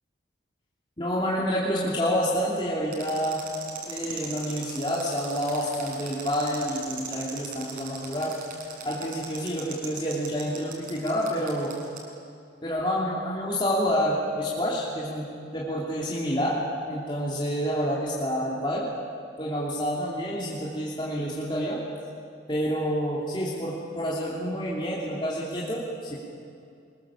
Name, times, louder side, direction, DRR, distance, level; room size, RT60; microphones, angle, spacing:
voice 1, 1.0-3.4 3.9-8.4 8.8-11.8 12.6-16.6 16.9-18.9 19.4-21.8 22.5-26.2, equal, 25° left, -6 dB, 3.1 m, -28 dB
sound 1, 2.9-12.0, right 6 dB, 50° right, 5.4 m, -39 dB
25.0 x 21.5 x 7.3 m, 2.5 s
head